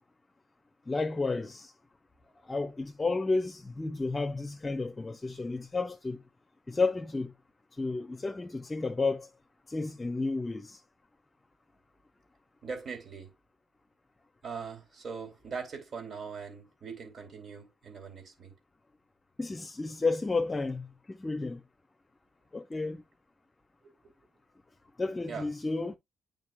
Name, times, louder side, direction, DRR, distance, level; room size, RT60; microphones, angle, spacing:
voice 1, 0.9-1.7 2.5-6.2 6.7-7.3 7.8-9.3 9.7-10.8 19.4-21.6 22.5-23.0 25.0-26.0, left 3 dB, 20° left, 0.9 m, -32 dB
voice 2, 12.6-13.3 14.4-18.6 23.8-24.1 25.2-25.5, right 5 dB, 50° right, 2.9 m, -41 dB
9.3 x 5.4 x 2.3 m
cardioid pair, 90°, 0 cm